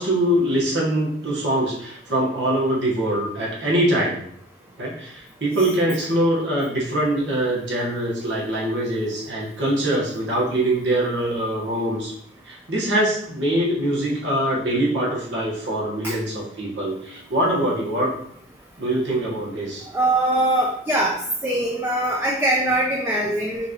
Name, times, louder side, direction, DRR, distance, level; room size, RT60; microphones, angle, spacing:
voice 1, 0.0-4.2 4.8-12.1 12.4-18.1 18.8-19.8, right 1 dB, 80° right, -4 dB, 1.4 m, -23 dB
voice 2, 19.9-21.2 21.4-23.7, right 1 dB, 15° right, -2 dB, 0.5 m, -22 dB
5.8 x 2.6 x 3.0 m, 0.68 s
head